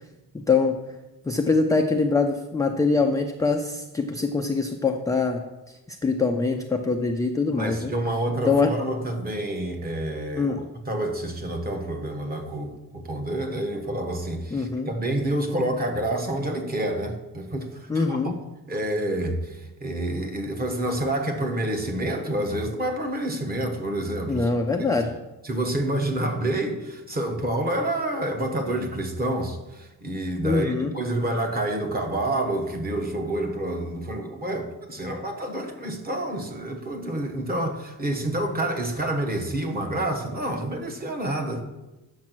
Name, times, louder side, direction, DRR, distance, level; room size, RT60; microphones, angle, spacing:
voice 1, 0.3-0.8 1.3-7.9 8.4-8.8 10.4-10.7 14.5-14.9 17.9-18.3 24.3-25.1 30.4-30.9, left 4 dB, 10° left, 3 dB, 0.3 m, -24 dB
voice 2, 7.6-10.6 10.9-18.3 18.7-24.5 24.8-24.9 25.4-41.6, right 1 dB, 25° right, 4 dB, 1.2 m, -28 dB
8.6 x 6.6 x 6.1 m, 1.0 s
cardioid pair, 175°, 40 cm